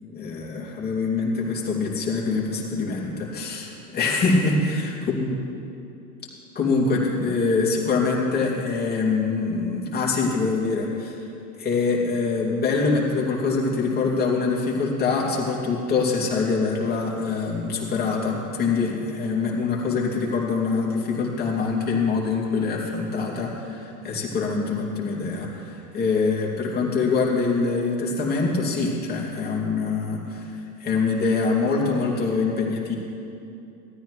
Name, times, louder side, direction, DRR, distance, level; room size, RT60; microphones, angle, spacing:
voice 1, 0.0-5.3 6.5-11.3 11.6-30.5 30.8-33.0, left 4 dB, 20° left, -3 dB, 2.8 m, -24 dB
18.0 x 13.0 x 3.3 m, 2.7 s
figure-of-eight pair, 85°, 46 cm